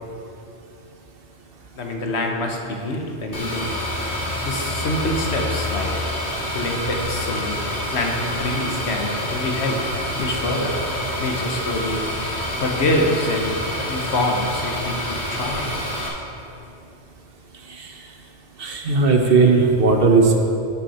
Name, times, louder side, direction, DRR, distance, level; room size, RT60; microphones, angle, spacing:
voice 1, 1.8-3.7 4.4-5.9 6.5-7.6 7.9-9.8 10.2-10.8 11.2-12.0 12.6-15.7, left 1 dB, 70° left, 2 dB, 1.3 m, -25 dB
sound 1, 3.3-16.1, left 1 dB, 50° left, 1.8 m, -27 dB
voice 2, 18.6-20.4, right 4 dB, 55° right, 3 dB, 1.0 m, -16 dB
11.0 x 6.3 x 4.2 m, 2.8 s
omnidirectional pair, 1.2 m